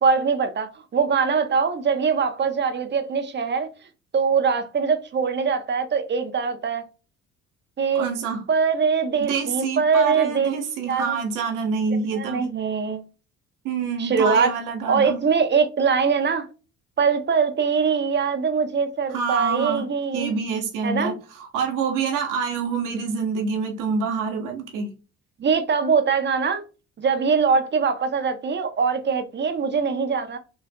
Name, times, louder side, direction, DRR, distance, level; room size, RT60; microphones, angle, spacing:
voice 1, 0.0-3.7 4.1-6.8 7.8-8.1 8.5-10.5 10.9-11.2 12.1-13.0 14.0-14.5 14.9-16.5 17.0-20.4 20.8-21.1 25.4-26.6 27.0-30.4, right 5 dB, 35° right, 0.7 m, -22 dB
voice 2, 7.9-8.4 9.2-12.4 13.6-15.2 19.1-19.8 20.1-24.9, right 5 dB, 65° right, 1.2 m, -26 dB
4.5 x 2.5 x 2.2 m
supercardioid pair, 70°, 33 cm